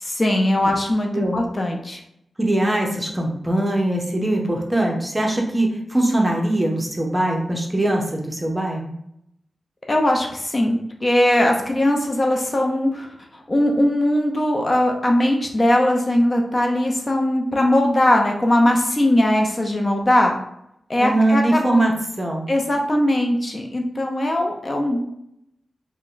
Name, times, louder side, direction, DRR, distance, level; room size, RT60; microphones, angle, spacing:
voice 1, 0.0-2.0 9.9-13.1 13.3-20.4 20.9-21.6 22.5-25.0, left 1 dB, 35° left, 2 dB, 0.5 m, -20 dB
voice 2, 2.4-8.9 21.0-22.5, right 1 dB, 15° right, 0 dB, 0.7 m, -21 dB
3.5 x 2.1 x 3.8 m, 0.75 s
wide cardioid pair, 90°, 0 cm